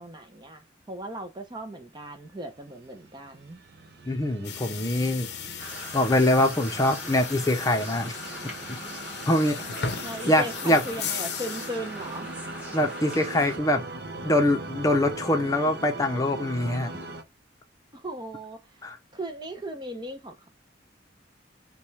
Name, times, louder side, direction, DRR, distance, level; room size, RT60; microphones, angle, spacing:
voice 1, 0.0-3.6 10.0-12.3 17.9-18.8 19.1-20.5, right 1 dB, 25° right, 0.6 m, -37 dB
sound 1, 2.9-17.2, right 2 dB, 55° right, 0.8 m, -41 dB
voice 2, 4.1-5.3 5.9-8.2 9.2-9.6 10.2-10.8 12.7-13.8 14.2-16.9 18.8-19.0, left 1 dB, 20° left, 0.7 m, -23 dB
sound 2, 4.4-12.2, left 7 dB, 60° left, 0.6 m, -37 dB
sound 3, 5.6-13.6, equal, 10° right, 1.5 m, -41 dB
5.9 x 2.3 x 3.1 m
head